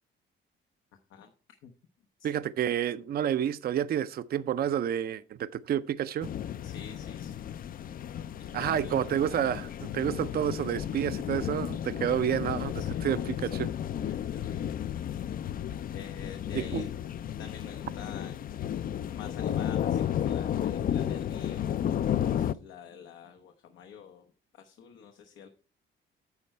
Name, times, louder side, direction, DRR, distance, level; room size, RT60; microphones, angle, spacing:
voice 1, 0.9-1.3 1.6-1.7 2.2-2.3 6.6-7.4 8.6-8.9 12.8-13.2 14.0-14.8 15.1-15.3 15.9-16.9 17.4-18.3 19.1-21.8 22.3-24.3 24.5-25.5, left 7 dB, 90° left, 1.0 m, -48 dB
voice 2, 2.2-6.3 8.5-12.7 13.0-13.7 16.5-16.8, right 10 dB, 50° right, 0.5 m, -29 dB
sound 1, 6.2-22.5, left 10 dB, 45° left, 0.4 m, -33 dB
9.6 x 6.4 x 4.4 m
cardioid pair, 90°, 20 cm